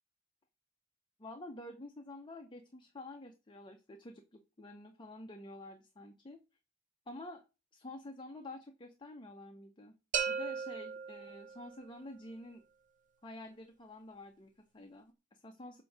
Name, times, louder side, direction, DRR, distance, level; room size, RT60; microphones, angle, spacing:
voice 1, 1.2-6.4 7.1-7.4 7.7-9.9 10.3-12.6 13.2-15.8, left 1 dB, 25° left, 4 dB, 0.6 m, -49 dB
sound 1, 10.1-12.0, right 6 dB, 40° right, 0.7 m, -37 dB
8.0 x 2.7 x 6.0 m, 0.30 s
head